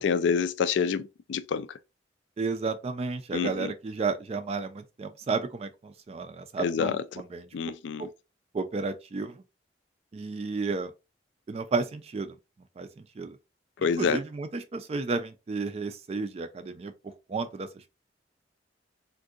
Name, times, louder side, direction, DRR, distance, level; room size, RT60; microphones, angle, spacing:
voice 1, 0.0-1.7 3.3-3.7 6.6-7.0 7.5-8.1 13.8-14.2, left 6 dB, 70° left, 0.3 m, -27 dB
voice 2, 2.4-7.5 8.0-8.1 8.5-9.4 10.1-10.9 11.5-12.4 12.8-12.9 13.2-13.4 14.0-16.9 17.3-17.7, right 4 dB, 35° right, 0.3 m, -32 dB
3.6 x 2.6 x 2.3 m
head